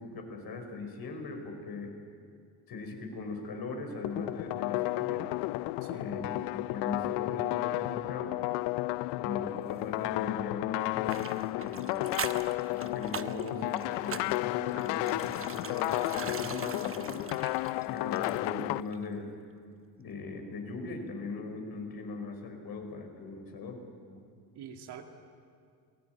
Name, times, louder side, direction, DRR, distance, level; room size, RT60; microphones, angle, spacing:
voice 1, 0.0-1.9 2.7-5.3 5.9-8.4 9.1-12.2 12.7-17.2 17.8-19.3 20.0-23.8, left 3 dB, 60° left, 4 dB, 5.2 m, -40 dB
sound 1, 4.0-18.8, left 20 dB, 75° left, 0.6 m, -32 dB
sound 2, 11.1-18.7 18.9-19.0, right 7 dB, 30° right, 1.1 m, -42 dB
voice 2, 24.3-25.0, right 8 dB, 70° right, 4 dB, 2.6 m, -46 dB
28.0 x 17.5 x 9.4 m, 2.3 s
supercardioid pair, 75°, 42 cm